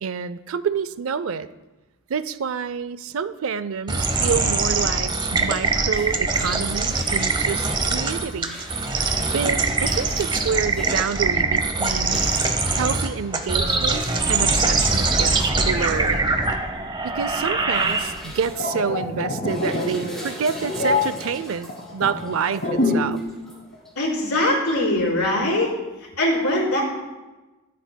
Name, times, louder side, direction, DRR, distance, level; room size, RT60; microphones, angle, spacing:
voice 1, 0.0-1.5 2.1-8.6 9.3-12.2 12.7-16.3 17.0-23.2, right 6 dB, 60° right, 15 dB, 0.4 m, -28 dB
sound 1, 3.9-18.4, right 3 dB, 20° right, 0.8 m, -23 dB
sound 2, 5.7-24.2, equal, ahead, 3.6 m, -42 dB
sound 3, 18.3-23.2 23.5-23.7, left 2 dB, 55° left, 2.0 m, -26 dB
voice 2, 24.0-25.7 26.2-26.8, left 1 dB, 80° left, -4 dB, 4.3 m, -21 dB
22.5 x 8.3 x 2.2 m, 1.1 s
head